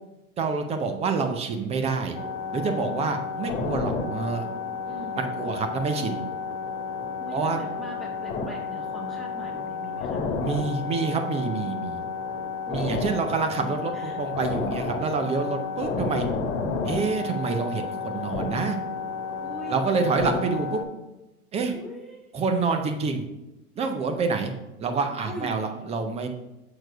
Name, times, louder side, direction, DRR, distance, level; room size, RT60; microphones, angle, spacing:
voice 1, 0.4-2.2 2.5-4.5 5.2-6.2 7.3-7.6 10.4-12.0 12.7-16.3 16.8-18.8 19.7-20.8 21.5-21.7 22.3-23.2 23.8-24.5 24.8-26.3, right 4 dB, 15° right, 6 dB, 0.5 m, -27 dB
sound 1, 2.1-20.8, left 5 dB, 50° left, 1.4 m, -31 dB
voice 2, 4.8-5.2 7.2-10.3 11.7-12.0 12.7-13.2 13.9-14.2 19.4-19.8 21.7-22.3 24.1-24.4 25.2-25.6, equal, ahead, -3 dB, 1.5 m, -41 dB
6.7 x 4.4 x 4.9 m, 0.95 s
hypercardioid pair, 115°, 44 cm